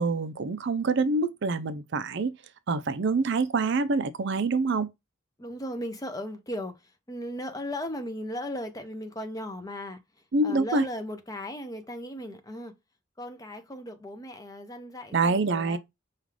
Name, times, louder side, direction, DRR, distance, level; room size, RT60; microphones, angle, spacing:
voice 1, 0.0-2.3 2.7-4.9 10.3-10.9 15.1-15.8, right 3 dB, 55° right, 0.4 m, -26 dB
voice 2, 5.4-10.0 10.4-12.7 13.2-15.8, left 1 dB, 15° left, 0.6 m, -37 dB
5.1 x 2.4 x 3.2 m
head